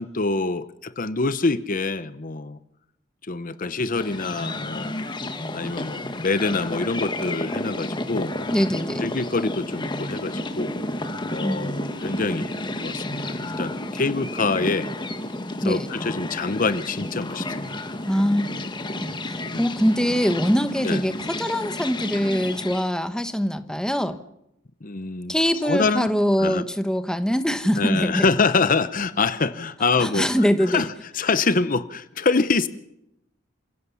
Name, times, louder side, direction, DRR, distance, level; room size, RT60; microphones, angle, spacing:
voice 1, 0.0-2.6 3.3-4.9 5.5-8.4 9.0-10.7 11.3-12.5 12.8-14.9 15.6-17.7 19.4-19.6 20.8-21.0 24.8-25.3 25.6-26.1 26.4-26.6 27.8-30.3 30.7-32.7, left 3 dB, 45° left, 13 dB, 0.9 m, -25 dB
sound 1, 3.9-22.9, left 1 dB, 25° left, 1.6 m, -31 dB
voice 2, 8.5-9.1 11.4-11.6 15.6-15.9 18.1-18.4 19.0-24.2 25.3-28.3 30.0-30.8, equal, 5° left, 9 dB, 1.0 m, -23 dB
sound 2, 8.7-14.9, right 2 dB, 55° right, 4.7 m, -46 dB
28.0 x 16.0 x 7.1 m, 0.83 s
head